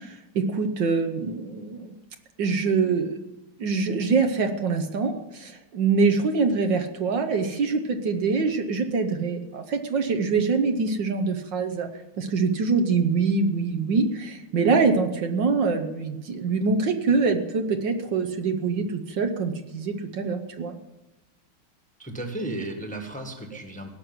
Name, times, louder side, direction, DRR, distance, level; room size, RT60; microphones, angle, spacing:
voice 1, 0.0-1.9 2.4-3.2 3.6-11.9 12.2-20.7, right 4 dB, 65° right, 6 dB, 1.6 m, -24 dB
voice 2, 22.0-23.9, right 1 dB, 5° left, 4 dB, 1.4 m, -34 dB
17.0 x 6.5 x 9.5 m, 0.98 s
omnidirectional pair, 2.3 m